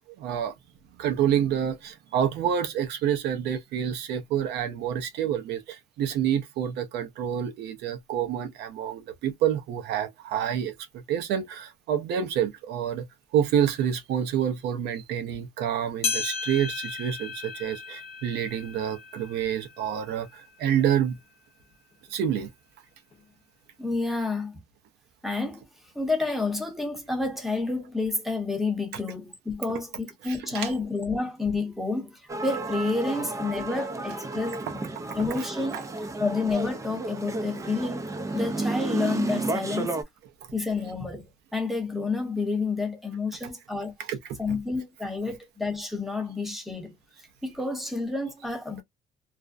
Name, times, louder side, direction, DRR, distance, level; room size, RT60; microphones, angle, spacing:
voice 1, 0.2-0.5 1.0-13.0 13.3-21.2 22.1-22.5 30.2-30.7 35.4-35.5 44.1-44.2, right 9 dB, 80° right, 0.6 m, -28 dB
sound 1, 16.0-20.7 21.2-21.3 22.1-22.2 23.1-23.2, left 5 dB, 40° left, 0.6 m, -35 dB
voice 2, 23.8-24.6 25.2-25.6 25.9-34.6 35.2-35.8 36.2-38.1 38.3-40.0 40.5-44.0 44.4-46.9 47.4-48.8, left 3 dB, ahead, 0.8 m, -29 dB
sound 2, 32.3-40.0, right 2 dB, 20° right, 0.4 m, -32 dB
2.5 x 2.1 x 2.4 m
cardioid pair, 110°, 17 cm